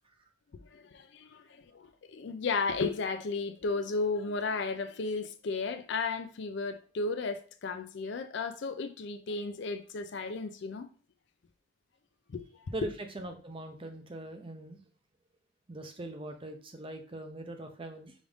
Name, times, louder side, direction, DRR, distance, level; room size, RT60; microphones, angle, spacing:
voice 1, 0.5-10.9 12.3-12.4, left 4 dB, 55° left, 0.4 m, -34 dB
voice 2, 13.1-14.8 15.7-18.1, right 1 dB, 25° right, 0.5 m, -41 dB
5.0 x 2.6 x 3.4 m
head